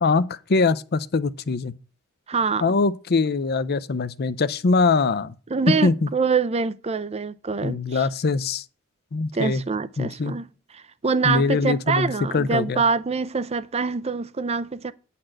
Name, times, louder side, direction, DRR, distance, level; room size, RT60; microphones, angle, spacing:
voice 1, 0.0-1.7 2.6-5.3 5.7-6.1 7.6-8.6 9.1-9.6 10.0-10.4 11.2-12.8, left 4 dB, 45° left, 0.6 m, -22 dB
voice 2, 2.3-2.6 5.5-8.0 9.3-10.5 10.7-14.9, right 4 dB, 30° right, 0.5 m, -25 dB
10.0 x 4.2 x 7.7 m
head